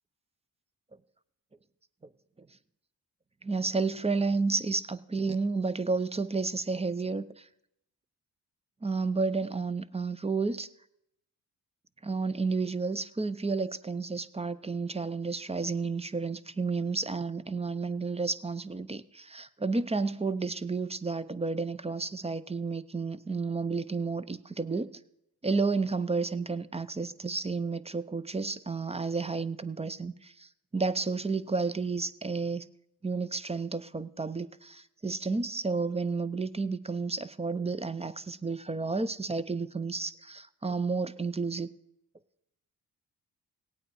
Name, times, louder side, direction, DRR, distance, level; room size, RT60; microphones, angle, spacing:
voice 1, 3.4-7.5 8.8-10.7 12.0-25.0 25.4-32.7 33.0-41.7, right 4 dB, 15° right, 15 dB, 0.6 m, -31 dB
17.0 x 8.7 x 4.8 m, 0.81 s
supercardioid pair, 55°, 40 cm